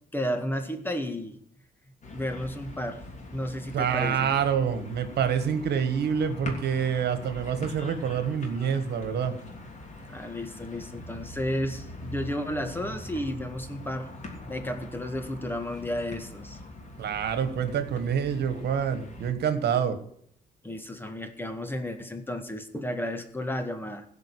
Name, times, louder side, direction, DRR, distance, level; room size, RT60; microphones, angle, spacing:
voice 1, 0.1-1.4 2.1-3.0 3.3-4.3 10.1-14.1 14.4-16.6 20.6-24.0, equal, 10° left, 7 dB, 1.8 m, -32 dB
sound 1, 2.0-19.3, left 2 dB, 40° left, 3.1 m, -43 dB
voice 2, 3.7-9.3 17.0-20.0, right 7 dB, 70° right, 10 dB, 1.6 m, -27 dB
16.0 x 5.4 x 8.5 m, 0.67 s
cardioid pair, 95°, 18 cm